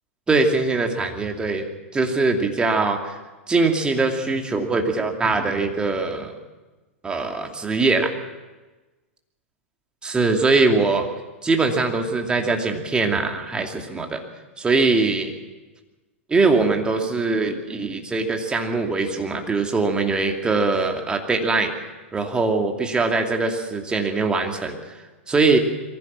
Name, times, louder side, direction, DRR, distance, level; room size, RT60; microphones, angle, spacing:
voice 1, 0.3-1.7 1.9-3.2 3.5-6.3 7.0-8.1 10.0-11.1 11.4-14.2 14.6-15.3 16.3-21.7 22.1-25.0 25.3-25.6, right 3 dB, 15° right, 3 dB, 2.6 m, -22 dB
22.5 x 15.5 x 7.5 m, 1.2 s
hypercardioid pair, 105°, 7 cm